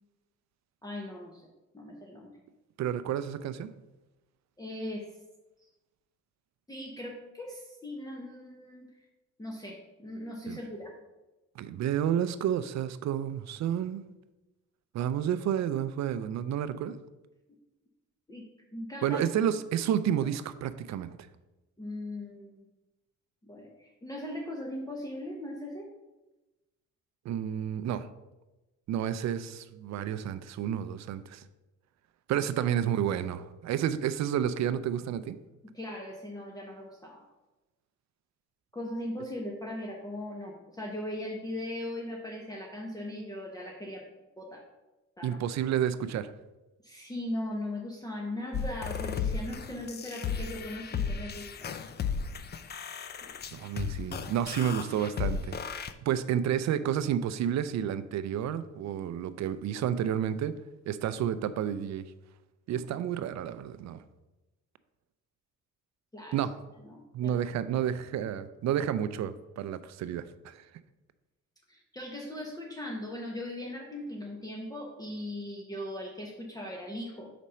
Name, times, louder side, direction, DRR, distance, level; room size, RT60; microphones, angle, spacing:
voice 1, 0.8-1.5 1.7-2.3 4.6-5.0 6.7-8.9 9.4-10.9 18.3-18.5 18.7-19.2 21.8-22.6 23.4-25.9 35.7-37.2 38.7-44.0 44.4-44.6 45.2-45.4 46.8-51.7 53.2-53.3 66.1-66.4 66.8-67.4 71.7-77.3, left 1 dB, 10° left, -1 dB, 1.0 m, -39 dB
voice 2, 2.8-3.7 10.5-10.6 11.6-14.0 14.9-16.9 19.0-21.1 27.2-28.1 28.9-31.4 32.3-35.4 45.2-46.3 53.5-60.5 60.9-62.0 62.7-64.0 66.3-66.6 67.1-70.6, right 9 dB, 65° right, 13 dB, 0.5 m, -30 dB
sound 1, 48.5-55.9, left 6 dB, 35° left, 0.4 m, -35 dB
5.1 x 4.2 x 5.5 m, 1.1 s
cardioid pair, 90°, 30 cm